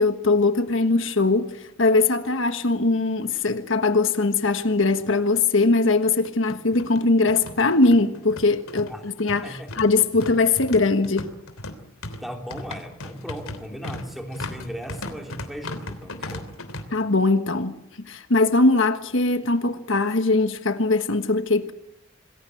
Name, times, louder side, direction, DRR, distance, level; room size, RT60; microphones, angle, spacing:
voice 1, 0.0-11.3 16.9-17.8 18.1-21.7, left 3 dB, 65° left, 1.4 m, -21 dB
sound 1, 4.8-4.9 5.2-5.3 6.1-16.8, left 2 dB, 80° left, 3.2 m, -37 dB
voice 2, 12.2-16.5, equal, ahead, 3.3 m, -37 dB
27.5 x 21.0 x 7.9 m
head